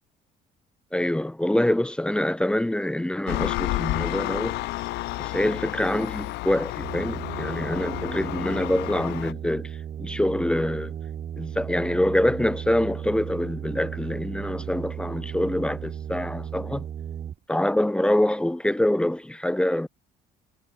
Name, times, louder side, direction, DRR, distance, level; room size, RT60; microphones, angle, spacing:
voice 1, 0.9-4.6 5.2-10.9 11.4-16.9 17.5-19.9, left 1 dB, 5° left, 0.7 m, -25 dB
Engine, 3.3-9.3, left 20 dB, 90° left, 1.7 m, -31 dB
sound 1, 6.8-17.4, right 9 dB, 45° right, 1.3 m, -35 dB
cardioid pair, 110°, 17 cm